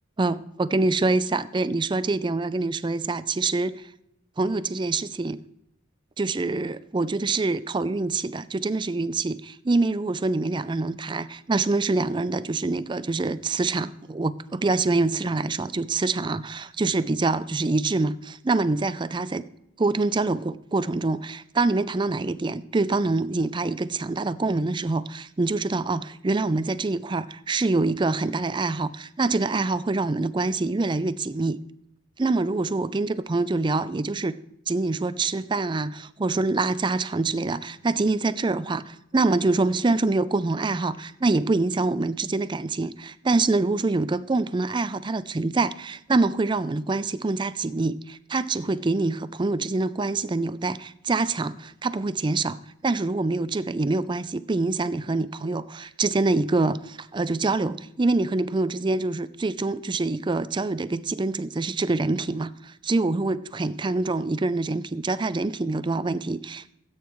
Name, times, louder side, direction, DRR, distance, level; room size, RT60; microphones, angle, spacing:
voice 1, 0.2-3.8 4.4-5.4 6.2-19.5 19.8-31.6 32.2-34.4 34.7-66.7, right 3 dB, 25° right, 15 dB, 0.4 m, -25 dB
17.5 x 9.1 x 3.1 m, 0.79 s
head